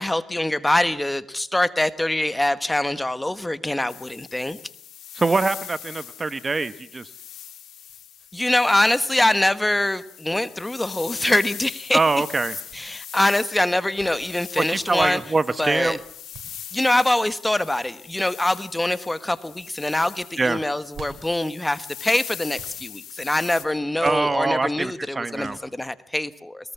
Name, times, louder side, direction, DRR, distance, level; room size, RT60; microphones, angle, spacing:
voice 1, 0.0-4.6 8.3-12.0 12.7-15.2 15.6-16.0 16.7-26.7, left 1 dB, 10° left, 14 dB, 1.4 m, -24 dB
sound 1, 3.9-23.6, left 10 dB, 75° left, 2.7 m, -41 dB
voice 2, 5.1-7.1 11.9-12.5 14.6-16.0 20.4-20.6 24.0-25.6, right 3 dB, 25° right, 14 dB, 1.1 m, -23 dB
sound 2, 7.1-8.3 8.6-8.7 9.7-10.0 11.1-11.4 12.4-12.8 13.7-14.1 14.7-15.1 15.8-16.6 17.8-18.1 18.7-19.1 19.3-19.6 20.6-21.4 22.5-22.8 24.0-24.6 25.4-25.9, right 6 dB, 60° right, 7.6 m, -48 dB
22.5 x 20.5 x 8.4 m, 0.63 s
cardioid pair, 90°, 0 cm